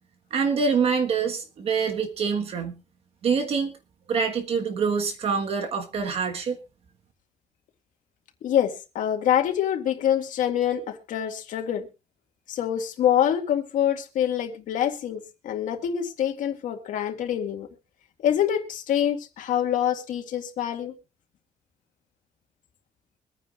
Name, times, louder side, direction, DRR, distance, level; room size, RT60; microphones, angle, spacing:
voice 1, 0.3-2.8 3.2-3.7 4.1-6.6, right 5 dB, 50° right, 1.5 m, -25 dB
voice 2, 8.4-11.9 12.5-17.7 18.2-20.9, left 10 dB, 85° left, 1.9 m, -25 dB
24.0 x 9.5 x 2.5 m
cardioid pair, 180°, 13 cm